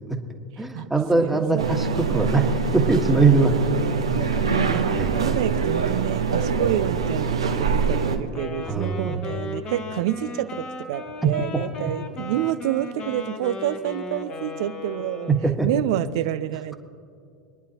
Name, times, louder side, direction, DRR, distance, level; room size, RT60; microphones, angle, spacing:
voice 1, 0.6-3.5 4.4-4.6 4.9-5.2 8.7-9.2 11.2-11.3 15.3-15.7, right 4 dB, 5° right, 3 dB, 1.4 m, -21 dB
voice 2, 1.2-1.9 4.1-15.3 15.6-16.8, right 13 dB, 60° right, 12 dB, 0.5 m, -28 dB
sound 1, 1.6-8.2, right 5 dB, 85° right, 1.0 m, -24 dB
Wind instrument woodwind instrument, 8.3-15.5, left 3 dB, 35° left, 1.4 m, -36 dB
26.5 x 10.0 x 2.9 m, 2.5 s
hypercardioid pair, 85°, 3 cm